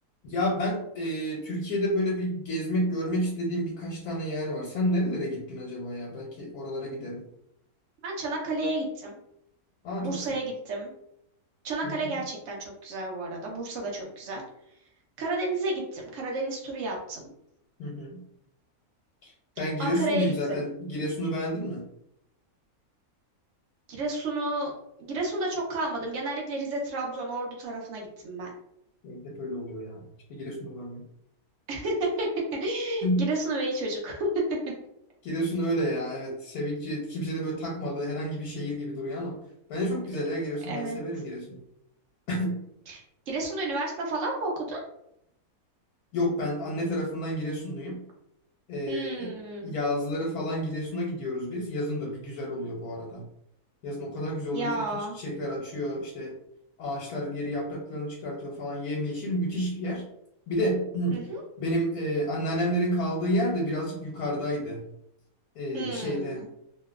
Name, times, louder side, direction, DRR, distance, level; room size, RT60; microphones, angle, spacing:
voice 1, 0.2-7.2 9.8-10.3 11.8-12.2 17.8-18.2 19.2-19.3 19.6-21.9 29.0-30.0 30.3-31.0 33.0-33.3 35.2-39.4 39.7-41.6 42.3-42.6 46.1-48.0 48.7-49.3 49.6-53.2 53.8-54.7 55.1-56.4 56.8-60.0 60.5-61.2 61.6-64.8 65.5-66.4, equal, 85° left, -2 dB, 1.2 m, -30 dB
voice 2, 8.0-9.2 10.0-10.9 11.6-14.4 15.2-17.3 19.8-20.7 23.9-24.7 25.0-28.5 31.7-34.3 40.7-41.0 42.9-44.8 48.9-49.7 54.5-55.2 61.1-61.4 65.7-66.5, right 2 dB, 60° right, -1 dB, 1.0 m, -31 dB
3.0 x 2.1 x 2.3 m, 0.76 s
omnidirectional pair, 1.6 m